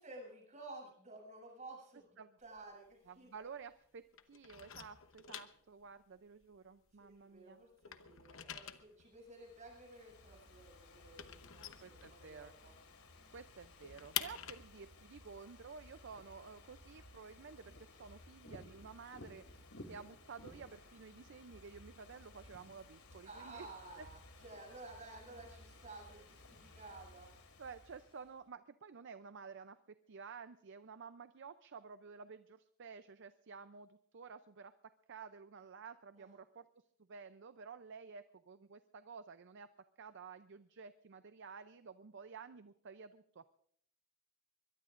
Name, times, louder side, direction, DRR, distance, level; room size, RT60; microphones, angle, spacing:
voice 1, 0.0-3.3 7.0-12.7 23.2-27.3 36.2-36.4, right 2 dB, 35° right, 0 dB, 7.6 m, -54 dB
sound 1, 2.4-3.9 4.1-7.3 7.6-12.7 13.0-13.1 13.4-17.1, left 10 dB, 60° left, 1.0 m, -47 dB
voice 2, 3.1-7.6 11.8-12.5 13.3-23.7 24.0-24.1 26.1-26.2 27.6-34.7 35.1-36.7 37.1-39.7 40.0-43.5, right 5 dB, 55° right, 11 dB, 0.5 m, -52 dB
Ocean / Fireworks, 9.1-28.4, left 2 dB, 80° left, 2.7 m, -58 dB
22.5 x 21.5 x 2.5 m, 0.65 s
head